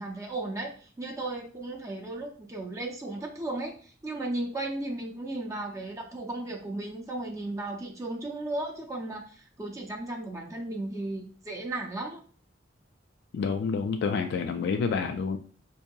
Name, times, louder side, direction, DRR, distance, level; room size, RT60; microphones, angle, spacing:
voice 1, 0.0-12.2, right 2 dB, 15° right, 0 dB, 0.4 m, -35 dB
voice 2, 13.3-15.4, left 5 dB, 60° left, 6 dB, 0.3 m, -28 dB
4.5 x 2.7 x 2.2 m, 0.42 s
head